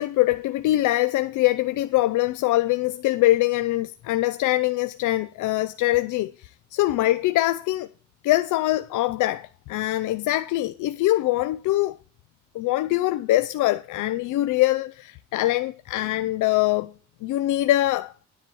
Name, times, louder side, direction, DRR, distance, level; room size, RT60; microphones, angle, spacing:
voice 1, 0.0-7.9 8.2-12.0 12.5-16.9 17.2-18.1, left 16 dB, 90° left, 0.6 m, -23 dB
10.5 x 4.7 x 7.7 m
cardioid pair, 90°, 30 cm